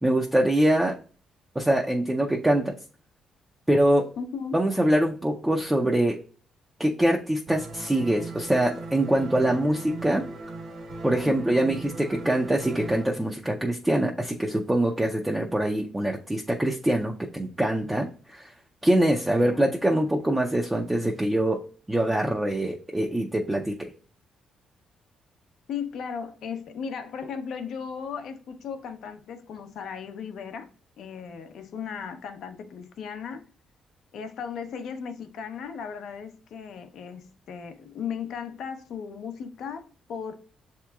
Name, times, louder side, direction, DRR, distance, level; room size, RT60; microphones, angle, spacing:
voice 1, 0.0-0.9 1.6-2.8 3.7-4.1 4.5-6.2 6.8-10.3 11.0-18.5 18.8-21.6 21.9-23.9, right 1 dB, 10° right, 0.5 m, -24 dB
voice 2, 4.2-4.6 11.2-11.8 19.4-19.6 25.7-30.7 31.0-33.4 34.1-40.3, left 6 dB, 70° left, 0.6 m, -36 dB
sound 1, 7.5-13.0, right 3 dB, 55° right, 1.3 m, -39 dB
7.0 x 2.9 x 2.3 m
cardioid pair, 90°, 0 cm